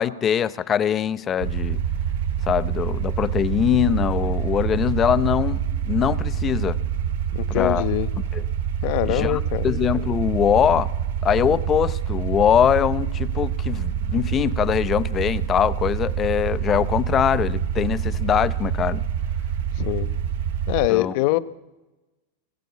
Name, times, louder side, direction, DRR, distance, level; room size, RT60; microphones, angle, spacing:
voice 1, 0.0-1.8 2.4-6.8 7.5-7.9 8.2-8.4 9.1-10.9 11.2-19.0 20.9-21.2, left 9 dB, 25° left, 0.6 m, -22 dB
sound 1, 1.4-20.9, right 8 dB, 70° right, 0.9 m, -26 dB
voice 2, 7.3-8.1 8.8-9.7 19.8-20.1 20.7-21.4, left 18 dB, 55° left, 0.9 m, -23 dB
22.5 x 19.5 x 8.4 m
supercardioid pair, 145°, 0 cm